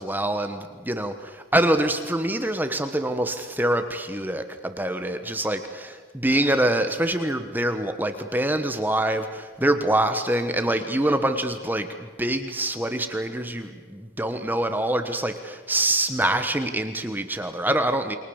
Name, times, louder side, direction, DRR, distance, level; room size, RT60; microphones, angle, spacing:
voice 1, 0.0-18.2, right 1 dB, 10° right, 7 dB, 1.2 m, -25 dB
29.5 x 23.0 x 7.2 m, 1.5 s
head